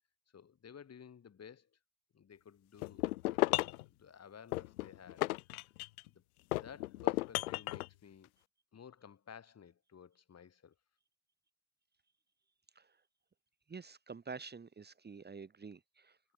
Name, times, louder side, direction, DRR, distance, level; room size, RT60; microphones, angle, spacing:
voice 1, 0.3-1.7 2.1-3.1 3.5-5.3 6.0-6.2 6.6-8.3 8.7-10.7, left 7 dB, 35° left, 5.3 m, -55 dB
sound 1, 2.8-3.8 4.5-6.1 6.5-7.9, left 18 dB, 70° left, 0.6 m, -34 dB
voice 2, 13.7-16.2, right 5 dB, 20° right, 2.2 m, -48 dB
figure-of-eight pair, 55°, 44 cm